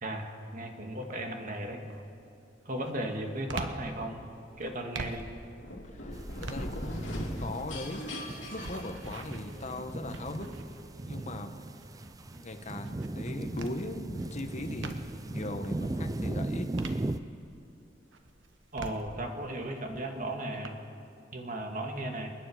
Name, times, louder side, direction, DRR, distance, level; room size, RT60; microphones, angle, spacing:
voice 1, 0.0-1.8 2.7-4.2 4.6-5.3 18.7-20.8 21.3-22.3, right 1 dB, 45° right, 3 dB, 1.8 m, -36 dB
sound 1, 1.0-1.4 1.8-15.4 15.8-17.7 18.1-20.7, right 2 dB, 75° right, 1.2 m, -46 dB
sound 2, 5.6-9.6, left 1 dB, 70° left, 3.5 m, -39 dB
voice 2, 5.8-10.5 11.0-11.8 12.2-16.7, left 1 dB, 40° left, 5 dB, 1.1 m, -40 dB
sound 3, 6.1-17.2, right 2 dB, 20° right, 0.4 m, -38 dB
29.0 x 10.0 x 4.9 m, 2.8 s
head